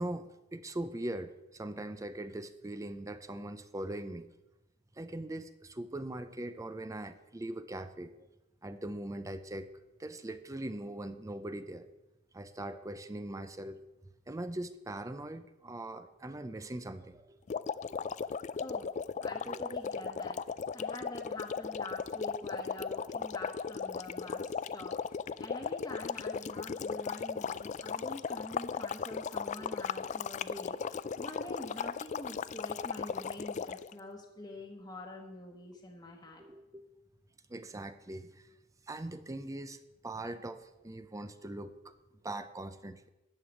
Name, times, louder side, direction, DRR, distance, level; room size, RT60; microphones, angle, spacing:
voice 1, 0.0-4.3 5.0-8.3 8.6-9.7 10.0-11.9 12.3-13.8 14.3-17.4 17.9-18.0 18.3-18.4 19.5-19.6 29.6-29.7 33.1-33.2 36.4-36.8 37.5-38.4 38.9-41.9 42.2-43.1, right 1 dB, 15° right, 11 dB, 0.6 m, -41 dB
sound 1, 17.5-33.9, left 6 dB, 40° left, 0.3 m, -37 dB
voice 2, 18.6-18.9 19.2-20.4 20.7-25.0 25.4-36.4, left 1 dB, 20° left, -1 dB, 1.3 m, -46 dB
13.0 x 5.0 x 9.0 m, 0.99 s
head